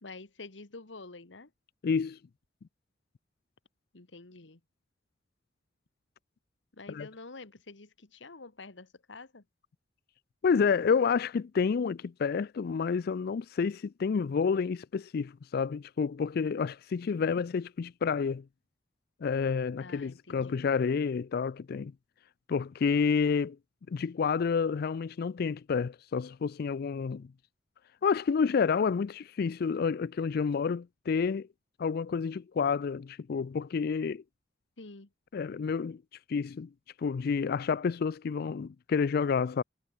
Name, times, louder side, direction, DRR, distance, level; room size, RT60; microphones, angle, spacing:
voice 1, 0.0-1.5 3.9-4.6 6.7-9.4 19.8-20.7 34.8-35.1, left 3 dB, 80° left, 1.6 m, -48 dB
voice 2, 1.8-2.2 6.9-7.1 10.4-18.4 19.2-21.9 22.5-23.6 23.9-27.3 28.0-31.5 31.8-34.2 35.3-36.0 36.3-36.7 37.0-39.6, left 5 dB, 55° left, 0.4 m, -29 dB
head